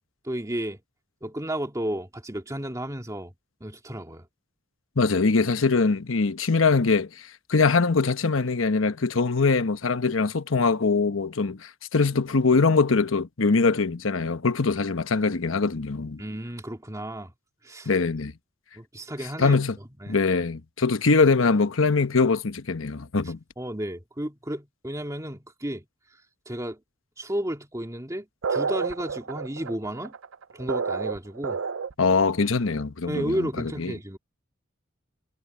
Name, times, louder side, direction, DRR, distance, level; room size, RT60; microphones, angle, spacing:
voice 1, 0.2-0.8 1.2-3.3 3.6-4.3 16.2-17.3 17.6-17.9 18.7-19.6 20.0-20.2 23.6-25.9 26.5-26.8 27.2-30.1 30.5-31.6 33.1-34.2, right 1 dB, 15° right, 2.4 m, -32 dB
voice 2, 5.0-16.2 17.9-18.3 19.4-19.7 20.1-23.4 32.0-33.9, left 4 dB, 80° left, 1.0 m, -23 dB
sound 1, 28.4-32.1, right 5 dB, 80° right, 0.6 m, -29 dB
head